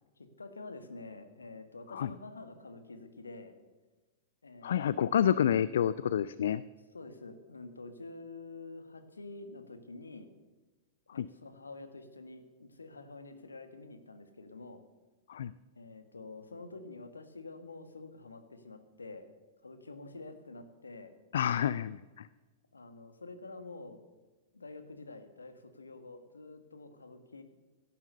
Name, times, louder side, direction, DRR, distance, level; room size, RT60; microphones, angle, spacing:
voice 1, 0.2-3.5 4.4-4.8 5.1-5.3 6.9-10.3 11.1-14.8 15.7-19.3 19.6-21.1 22.7-24.0 24.5-27.4, left 3 dB, 75° left, 9 dB, 1.7 m, -48 dB
voice 2, 4.6-6.6 11.1-11.3 15.3-15.5 21.3-22.3, left 9 dB, 60° left, 18 dB, 0.4 m, -29 dB
17.0 x 11.0 x 6.7 m, 1.2 s
figure-of-eight pair, 100°, 0 cm